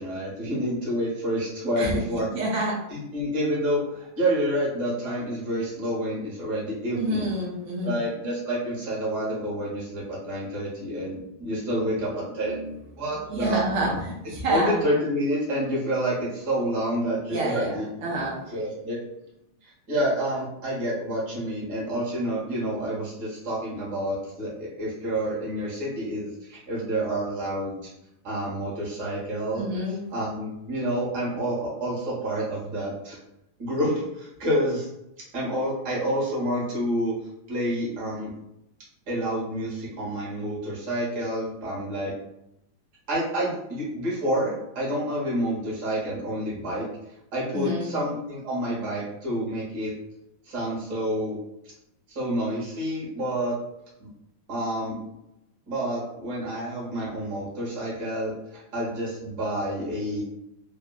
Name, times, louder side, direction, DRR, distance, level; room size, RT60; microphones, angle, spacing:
voice 1, 0.0-2.3 2.9-7.3 7.8-12.6 13.0-13.9 14.5-17.9 18.5-19.0 19.6-27.8 28.2-29.7 30.1-33.2 33.6-34.9 35.3-37.1 37.5-38.3 39.1-42.1 43.1-46.9 47.3-49.9 50.4-51.4 52.1-53.5 54.0-54.1 54.5-55.0 55.7-60.2, right 1 dB, 55° right, -6 dB, 1.5 m, -28 dB
voice 2, 2.3-2.8 6.9-8.0 12.4-12.8 13.3-14.8 17.3-18.6 29.6-30.1 47.5-48.0, right 1 dB, 75° right, -4 dB, 1.0 m, -28 dB
3.6 x 2.2 x 2.3 m, 0.85 s
omnidirectional pair, 2.4 m